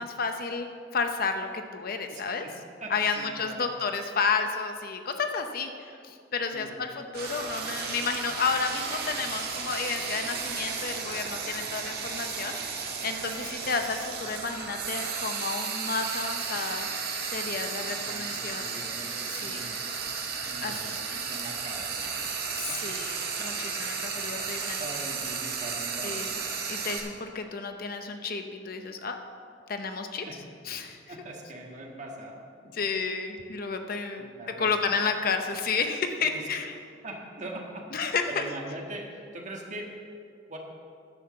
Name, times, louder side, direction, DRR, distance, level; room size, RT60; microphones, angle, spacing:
voice 1, 0.0-2.4 2.9-16.9 17.3-18.6 19.3-19.6 20.6-20.9 22.6-24.8 26.0-26.4 26.7-29.2 29.7-30.2 30.7-31.0 32.7-34.3 34.6-36.7 37.9-38.4, left 5 dB, 50° left, 6 dB, 0.7 m, -31 dB
voice 2, 2.1-2.5 2.8-3.7 6.5-6.8 12.4-12.6 17.8-19.8 20.5-22.0 22.7-22.9 24.8-26.3 30.3-30.4 31.1-32.4 34.2-35.0 36.2-36.5 37.0-37.8 38.3-39.9 40.5-40.6, right 1 dB, 40° right, 0 dB, 1.6 m, -42 dB
Frying (food), 7.1-27.0, right 5 dB, 55° right, 1.5 m, -34 dB
10.5 x 6.4 x 7.6 m, 2.3 s
head